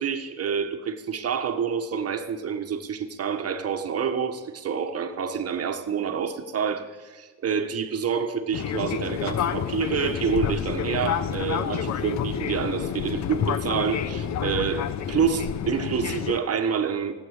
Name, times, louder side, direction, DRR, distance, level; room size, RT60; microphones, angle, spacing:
voice 1, 0.0-17.1, right 7 dB, 50° right, 7 dB, 1.5 m, -28 dB
Fixed-wing aircraft airplane, 8.5-16.4, left 8 dB, 65° left, 1.0 m, -29 dB
18.0 x 8.5 x 8.3 m, 1.4 s
cardioid pair, 90°, 30 cm